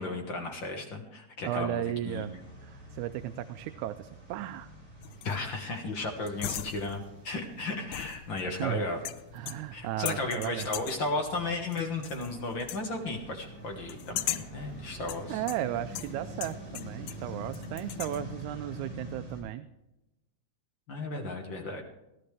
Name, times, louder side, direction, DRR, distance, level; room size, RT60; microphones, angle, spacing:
voice 1, 0.0-2.2 5.2-9.0 9.7-15.4 20.9-21.8, left 2 dB, 50° left, 3 dB, 1.8 m, -34 dB
voice 2, 1.4-2.3 2.6-4.7 8.6-8.8 9.3-10.7 15.3-19.7, right 12 dB, 85° right, 10 dB, 2.0 m, -35 dB
sound 1, 2.0-19.4, equal, 25° right, 4.7 m, -46 dB
sound 2, 5.0-5.5 6.3-7.1 7.9-8.6 9.1-9.8 10.1-11.1 11.7-12.3 12.6-12.9 13.9-14.6 15.1-17.3 17.5-18.2, left 13 dB, 80° left, 1.9 m, -39 dB
17.0 x 11.5 x 3.4 m, 0.95 s
omnidirectional pair, 3.3 m